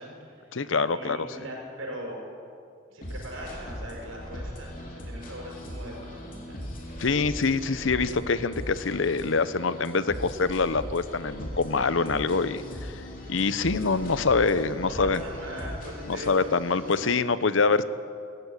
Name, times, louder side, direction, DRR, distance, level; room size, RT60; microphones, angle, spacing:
voice 1, 0.0-0.6 0.9-2.2 2.9-6.6 7.1-7.3 14.8-16.6, equal, 90° right, -1 dB, 6.1 m, -40 dB
voice 2, 0.5-1.3 7.0-15.2 16.1-17.8, left 4 dB, 75° left, 14 dB, 0.8 m, -25 dB
sound 1, 3.0-17.1, equal, 40° left, 3.6 m, -39 dB
18.5 x 15.0 x 9.9 m, 2.5 s
head